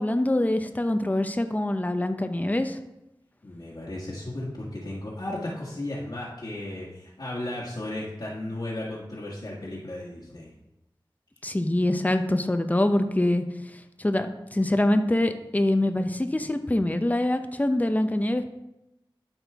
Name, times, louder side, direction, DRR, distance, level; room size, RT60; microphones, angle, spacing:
voice 1, 0.0-2.8 11.4-13.4 14.0-18.5, left 1 dB, 20° left, 8 dB, 0.6 m, -24 dB
voice 2, 3.4-10.5, left 1 dB, 60° left, -6 dB, 1.7 m, -35 dB
12.0 x 4.3 x 3.5 m, 0.90 s
wide cardioid pair, 40°, 9 cm